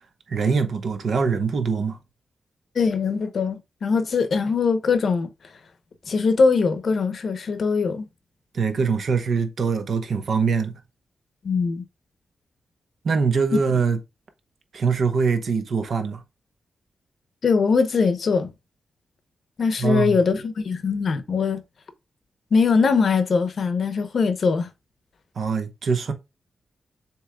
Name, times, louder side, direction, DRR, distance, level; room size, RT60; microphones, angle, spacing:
voice 1, 0.3-2.0 8.5-10.7 13.0-14.0 14.7-16.2 19.8-20.2 25.4-26.1, right 5 dB, 60° right, 0.9 m, -23 dB
voice 2, 2.7-5.3 6.1-8.1 11.4-11.8 17.4-18.5 19.6-21.6 22.5-24.7, left 5 dB, 55° left, 0.8 m, -21 dB
6.9 x 3.1 x 2.3 m
wide cardioid pair, 125°, 0 cm